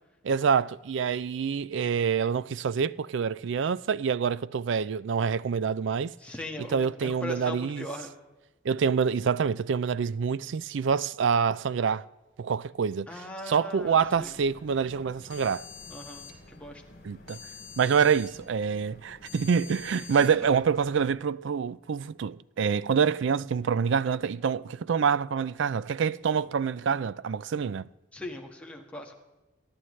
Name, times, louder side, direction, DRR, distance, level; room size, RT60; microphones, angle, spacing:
voice 1, 0.2-6.1 6.7-7.9 8.6-12.1 12.4-13.1 13.5-15.6 17.0-17.4 17.8-27.9, right 6 dB, 65° right, 0.4 m, -26 dB
voice 2, 6.2-8.1 13.1-14.3 15.9-16.8 20.2-20.3 28.1-29.1, left 1 dB, 5° left, 1.5 m, -39 dB
sound 1, 13.8-21.1, left 5 dB, 55° left, 3.7 m, -48 dB
28.5 x 11.5 x 3.2 m
head